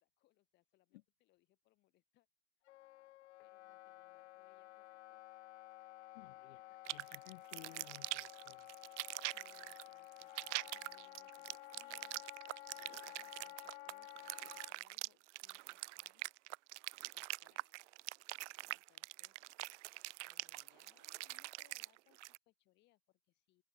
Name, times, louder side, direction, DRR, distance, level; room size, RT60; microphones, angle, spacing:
voice 1, 0.0-2.3 2.6-2.8 3.4-5.2 6.3-7.4 9.0-12.2 12.7-16.7 17.1-18.0 18.6-19.4 20.3-23.6, left 17 dB, 30° left, 5.4 m, -75 dB
Wind instrument woodwind instrument, 2.7-14.7, left 17 dB, 75° left, 1.4 m, -54 dB
voice 2, 6.1-8.7, left 19 dB, 60° left, 3.5 m, -58 dB
sound 1, 6.9-22.4, right 20 dB, 85° right, 0.5 m, -44 dB
supercardioid pair, 175°, 35 cm